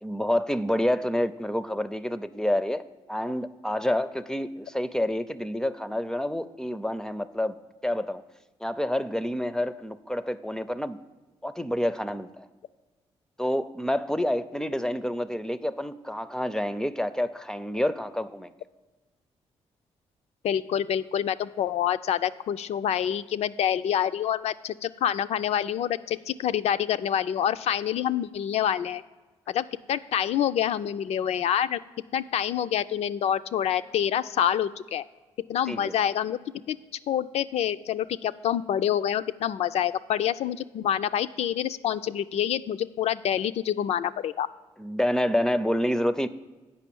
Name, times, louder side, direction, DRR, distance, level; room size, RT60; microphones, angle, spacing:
voice 1, 0.0-2.8 3.1-7.6 7.8-8.2 8.6-11.0 11.4-12.5 13.4-18.5 35.7-35.9 44.8-46.3, left 1 dB, 5° left, 13 dB, 0.4 m, -28 dB
voice 2, 20.4-29.0 29.5-31.8 32.1-35.0 35.5-36.4 36.7-36.8 37.1-44.5, left 10 dB, 70° left, 13 dB, 0.4 m, -27 dB
8.3 x 5.4 x 6.9 m, 1.2 s
cardioid pair, 90°, 11 cm